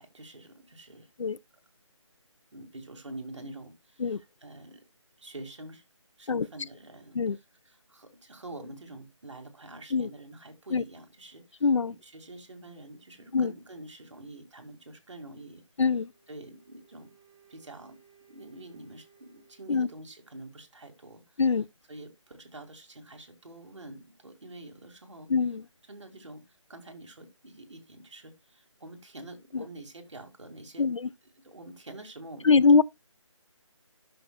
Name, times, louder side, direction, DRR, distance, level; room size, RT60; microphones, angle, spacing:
voice 1, 0.0-1.1 2.5-4.8 5.2-5.8 6.2-15.6 16.3-17.1 17.5-18.0 18.3-21.4 21.9-25.3 25.9-30.9 31.4-32.7, right 2 dB, 65° right, 2.3 m, -46 dB
voice 2, 11.6-11.9 13.3-13.5 15.8-16.1 19.7-19.9 21.4-21.7 25.3-25.6 29.5-29.6 30.8-31.1 32.4-32.8, left 4 dB, 65° left, 0.4 m, -23 dB
Wind instrument woodwind instrument, 15.8-20.2, right 7 dB, 25° right, 4.3 m, -62 dB
13.0 x 6.4 x 2.4 m
figure-of-eight pair, 175°, 17 cm